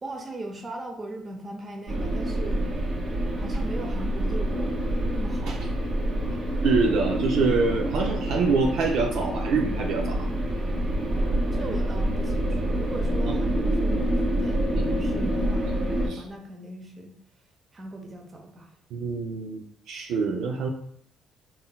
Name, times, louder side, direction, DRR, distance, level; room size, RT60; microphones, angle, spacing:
voice 1, 0.0-2.6 3.4-5.7 11.5-17.1 17.7-18.7, right 1 dB, 35° right, 3 dB, 0.8 m, -39 dB
sound 1, 1.9-16.1, right 1 dB, 55° right, 1.4 m, -27 dB
voice 2, 6.6-10.2 13.6-13.7 16.1-16.2 18.9-20.7, right 4 dB, 75° right, 1 dB, 0.4 m, -25 dB
4.1 x 3.7 x 2.3 m, 0.66 s
supercardioid pair, 70°, 0 cm